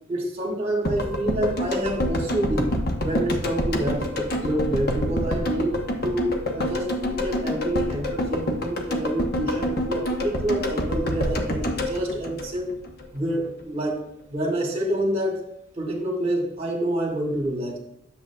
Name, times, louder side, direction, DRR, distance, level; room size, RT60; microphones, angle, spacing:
voice 1, 0.1-2.7 3.0-4.1 4.4-5.8 6.0-12.7 13.1-14.0 14.3-15.4 15.8-17.8, right 1 dB, 30° right, 1 dB, 1.8 m, -27 dB
sound 1, 0.9-13.0 13.3-13.4, left 1 dB, 55° left, 1.0 m, -27 dB
10.5 x 7.4 x 2.3 m, 0.77 s
head